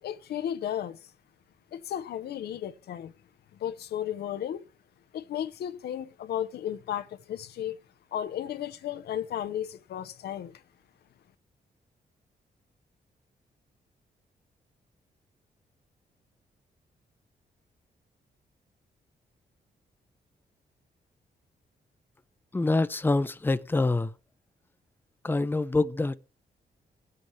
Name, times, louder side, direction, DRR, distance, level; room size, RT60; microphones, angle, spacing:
voice 1, 0.0-1.0 1.7-3.1 3.6-4.6 5.1-7.8 8.1-10.6, left 10 dB, 85° left, 0.7 m, -34 dB
voice 2, 22.5-24.1 25.2-26.1, left 2 dB, 15° left, 0.6 m, -25 dB
19.5 x 7.8 x 3.1 m
cardioid pair, 75°, 16 cm